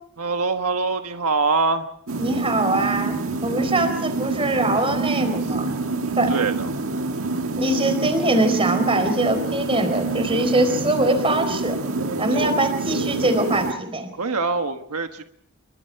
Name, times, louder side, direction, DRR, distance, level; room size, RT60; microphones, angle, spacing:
voice 1, 0.2-1.8 6.3-6.7 12.4-12.5 14.2-15.2, right 4 dB, 85° right, 6 dB, 1.4 m, -23 dB
sound 1, 2.1-13.7, right 3 dB, 65° right, 1.9 m, -26 dB
voice 2, 2.2-3.1 3.4-5.7 6.2-6.3 7.6-11.8 12.2-14.1, right 2 dB, 25° right, 8 dB, 4.3 m, -22 dB
28.5 x 24.5 x 4.7 m, 0.69 s
head